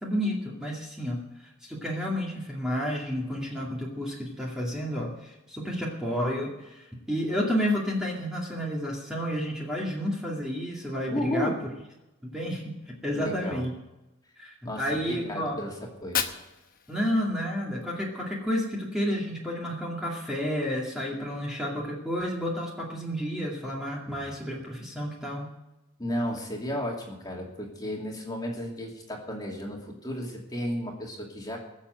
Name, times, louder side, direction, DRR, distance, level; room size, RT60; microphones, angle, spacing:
voice 1, 0.0-1.2 1.6-11.5 12.2-12.6 13.0-13.7 14.4-15.6 16.9-25.5, equal, 5° right, -4 dB, 2.3 m, -30 dB
voice 2, 11.1-11.6 13.1-13.6 14.6-15.7 16.0-16.2 24.1-24.2 26.0-31.6, equal, 20° left, -1 dB, 2.6 m, -33 dB
Fire, 15.8-17.8, left 8 dB, 40° left, 1.1 m, -35 dB
20.5 x 7.3 x 7.8 m, 0.97 s
head